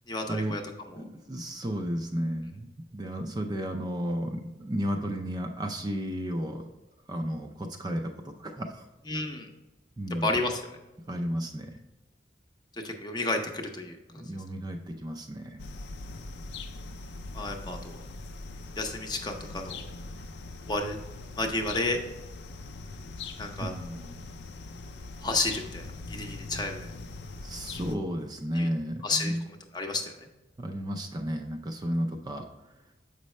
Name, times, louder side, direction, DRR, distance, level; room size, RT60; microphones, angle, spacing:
voice 1, 0.1-0.6 0.9-1.0 9.1-9.5 10.1-10.6 12.8-14.0 17.3-17.9 18.8-19.9 20.6-21.0 21.4-22.0 23.4-23.7 25.2-26.9 28.5-28.7 29.0-29.4 29.7-30.1, left 2 dB, 25° left, 3 dB, 0.7 m, -31 dB
voice 2, 1.0-6.6 7.1-8.8 10.0-10.4 11.1-11.7 14.1-15.6 23.6-24.2 27.4-29.4 30.6-32.4, equal, 20° right, 4 dB, 0.4 m, -33 dB
sound 1, 15.6-28.0, left 3 dB, 75° left, 0.5 m, -41 dB
7.3 x 5.3 x 3.2 m, 1.1 s
head